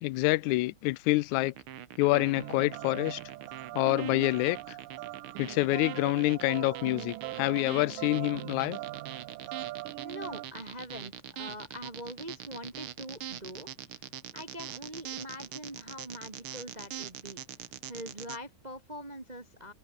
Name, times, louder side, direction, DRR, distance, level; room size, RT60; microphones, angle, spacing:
voice 1, 0.0-1.5 2.0-3.2 3.7-4.8 5.4-8.8, left 20 dB, 75° left, 1.9 m, -27 dB
sound 1, 1.4-18.4, right 11 dB, 60° right, 1.4 m, -43 dB
sound 2, 2.3-10.5, right 18 dB, 85° right, 2.4 m, -41 dB
voice 2, 10.0-13.7 14.3-17.4 17.8-19.7, equal, 25° right, 0.8 m, -43 dB
open air
omnidirectional pair, 3.8 m